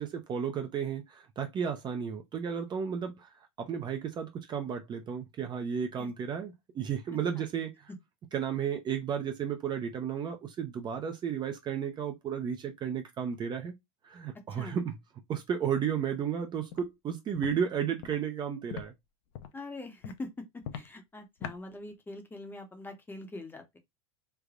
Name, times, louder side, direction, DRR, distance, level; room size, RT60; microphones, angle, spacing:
voice 1, 0.0-7.7 8.3-13.7 14.0-15.0 15.3-18.9, right 7 dB, 25° right, 0.6 m, -33 dB
Walk footsteps, 16.7-16.9 17.3-17.5 18.0-18.2 18.7-18.8 19.3-19.6 20.0-20.2 20.6-20.9 21.4-21.6, left 9 dB, 60° left, 0.6 m, -40 dB
voice 2, 19.5-20.4 20.7-23.8, left 2 dB, 10° left, 0.8 m, -43 dB
3.3 x 2.1 x 3.6 m
supercardioid pair, 120°, 16 cm